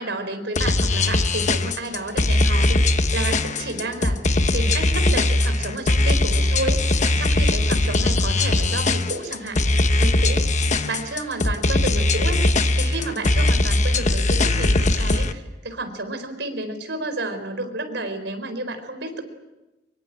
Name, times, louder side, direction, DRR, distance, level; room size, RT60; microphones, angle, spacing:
voice 1, 0.0-4.2 4.5-10.5 10.8-12.4 12.8-19.2, right 2 dB, 70° right, 7 dB, 4.5 m, -31 dB
sound 1, 0.5-15.3, left 2 dB, 40° left, 1.1 m, -20 dB
24.5 x 23.0 x 8.8 m, 1.0 s
head